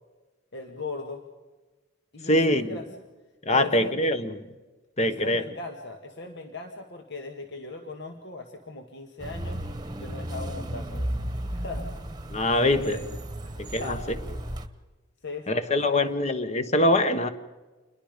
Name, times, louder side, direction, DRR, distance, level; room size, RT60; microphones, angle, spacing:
voice 1, 0.5-1.2 2.1-2.9 3.5-4.1 5.0-9.6 10.0-11.1 11.5-11.9 12.6-13.0 13.4-14.0 15.2-16.2, left 3 dB, 60° left, 1.8 m, -38 dB
voice 2, 2.3-2.8 3.4-4.3 5.0-5.4 12.3-13.0 13.6-14.0 15.5-17.3, left 1 dB, 35° left, 1.3 m, -23 dB
sound 1, 9.2-14.7, right 1 dB, 20° right, 1.2 m, -34 dB
28.5 x 21.5 x 5.2 m
head